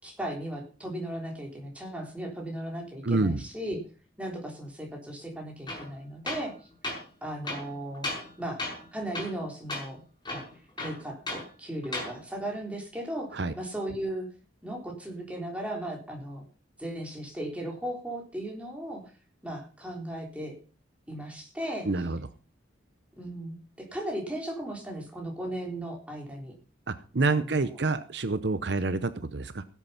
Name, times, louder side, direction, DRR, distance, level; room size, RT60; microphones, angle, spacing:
voice 1, 0.0-3.8 4.2-6.5 7.2-8.1 8.4-8.7 8.9-10.0 10.3-10.5 10.8-14.3 14.6-16.4 16.8-19.1 19.4-20.6 21.1-22.1 23.2-26.5 27.3-27.8, right 1 dB, 5° right, 0 dB, 3.7 m, -36 dB
voice 2, 3.0-3.4 13.3-13.5 21.9-22.2 26.9-29.6, right 3 dB, 65° right, 12 dB, 0.8 m, -27 dB
Tools, 5.7-5.9 6.3-6.5 6.8-7.0 7.4-8.3 8.6-8.9 9.1-9.4 9.7-9.9 10.2-11.5 11.8-12.1, left 2 dB, 25° left, 5.5 m, -35 dB
17.0 x 8.1 x 5.7 m, 0.37 s
head